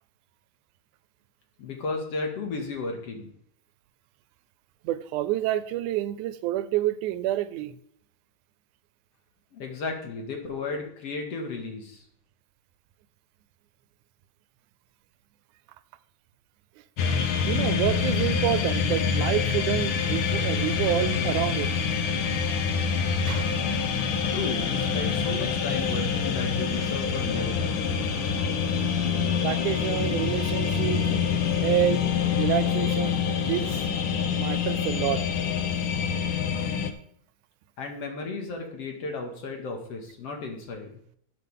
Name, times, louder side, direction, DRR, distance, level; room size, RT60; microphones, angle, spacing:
voice 1, 1.6-3.3 9.5-12.0 24.3-27.7 37.8-40.9, left 3 dB, 55° left, 2 dB, 2.7 m, -34 dB
voice 2, 4.8-7.8 17.5-21.7 23.3-23.6 29.4-31.0 31.6-32.0 32.4-33.8 34.4-35.2, right 13 dB, 90° right, 14 dB, 2.1 m, -28 dB
sound 1, 17.0-36.9, left 6 dB, 75° left, 1.1 m, -26 dB
13.0 x 7.8 x 3.6 m, 0.68 s
omnidirectional pair, 3.4 m